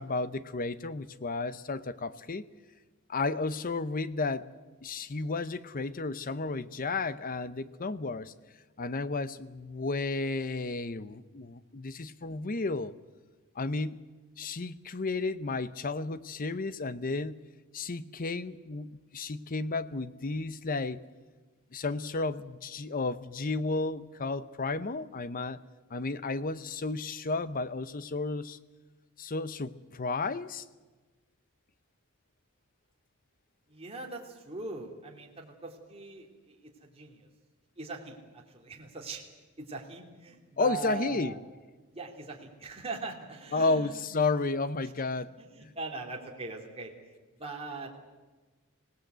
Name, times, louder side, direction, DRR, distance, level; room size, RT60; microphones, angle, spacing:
voice 1, 0.0-2.5 3.1-4.5 4.8-8.3 8.8-12.9 13.6-14.0 14.4-17.3 17.7-21.0 21.7-25.6 25.9-28.6 29.2-30.6 40.6-41.4 43.5-45.3 45.6-45.7, left 3 dB, 40° left, 15 dB, 0.7 m, -32 dB
voice 2, 33.7-36.3 36.6-37.3 37.8-38.2 38.5-39.2 39.6-41.4 41.9-44.0 45.5-46.9 47.4-47.9, right 3 dB, 25° right, 0 dB, 2.7 m, -40 dB
25.5 x 17.5 x 8.0 m, 1.3 s
head